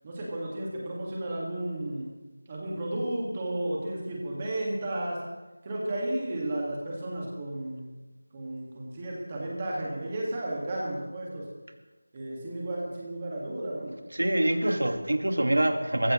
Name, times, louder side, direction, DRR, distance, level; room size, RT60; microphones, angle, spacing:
voice 1, 0.0-2.1 2.5-5.2 5.6-7.9 8.3-11.4 12.1-13.9, right 1 dB, 15° right, -3 dB, 1.8 m, -33 dB
voice 2, 14.1-16.1, right 1 dB, 80° right, 6 dB, 1.7 m, -25 dB
25.0 x 15.0 x 3.1 m, 1.2 s
figure-of-eight pair, 180°, 0 cm